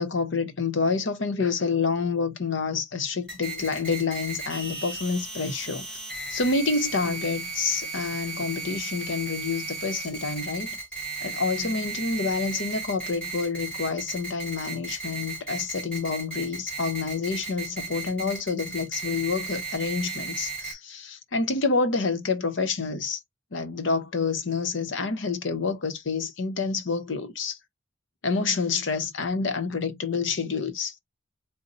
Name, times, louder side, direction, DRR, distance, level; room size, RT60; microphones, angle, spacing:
voice 1, 0.0-5.8 6.3-10.7 11.2-23.2 23.5-27.6 28.2-30.9, left 4 dB, 85° left, 0.8 m, -28 dB
sound 1, 3.3-20.7, right 4 dB, 5° left, 2.2 m, -35 dB
4.2 x 2.1 x 3.8 m
head